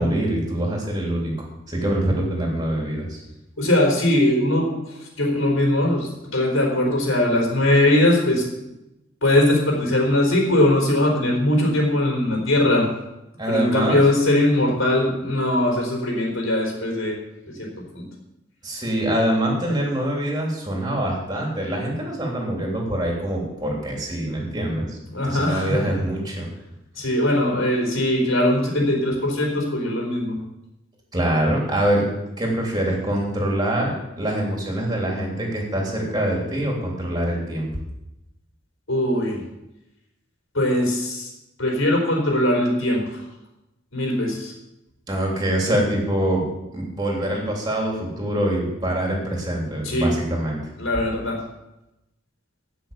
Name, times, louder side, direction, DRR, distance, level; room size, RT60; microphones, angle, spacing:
voice 1, 0.0-3.2 13.4-14.0 18.6-24.9 25.3-26.5 31.1-32.0 32.4-37.7 45.1-46.4 46.7-50.6, right 1 dB, 20° right, -1 dB, 3.3 m, -24 dB
voice 2, 3.6-4.7 5.2-8.4 9.2-12.8 13.4-17.2 17.5-17.7 17.9-18.0 25.1-25.9 27.0-30.4 38.9-39.4 40.5-41.3 41.6-43.2 43.9-44.5 49.8-50.1 50.8-51.4, left 1 dB, 75° left, -1 dB, 4.1 m, -20 dB
15.0 x 6.3 x 6.9 m, 0.93 s
head